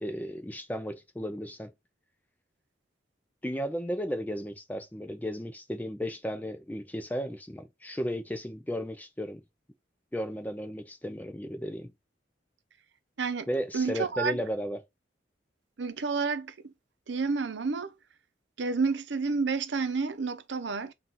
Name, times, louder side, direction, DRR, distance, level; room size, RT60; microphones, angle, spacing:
voice 1, 0.0-1.7 3.4-9.4 10.1-11.9 13.5-14.8, equal, 10° left, 0.5 m, -34 dB
voice 2, 13.2-13.5 13.7-14.4 15.8-16.7 17.1-17.9 18.6-20.9, right 4 dB, 80° right, 0.7 m, -30 dB
3.9 x 2.5 x 4.2 m
head